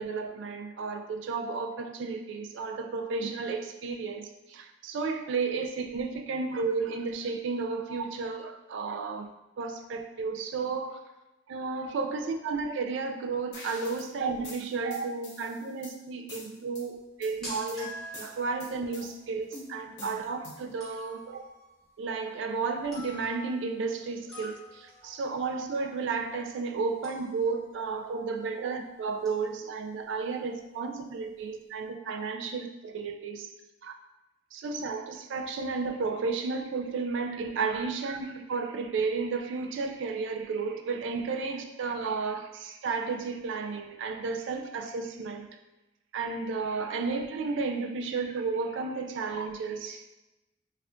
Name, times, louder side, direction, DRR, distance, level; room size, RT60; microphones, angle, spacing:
voice 1, 0.0-9.3 9.6-11.0 11.5-17.9 18.2-21.5 22.0-33.5 33.8-33.9 34.5-45.5 46.1-50.0, right 4 dB, 65° right, 5 dB, 0.3 m, -33 dB
sound 1, 13.5-14.1 14.4-15.9 16.3-16.8 17.2-17.8 18.1-19.1 19.5-20.7, left 2 dB, 60° left, 1.0 m, -46 dB
sound 2, 17.0-28.9 29.2-29.5 29.8-30.0 30.6-30.7 30.9-31.5, left 1 dB, 5° left, 1.0 m, -48 dB
4.2 x 2.4 x 2.5 m, 1.0 s
head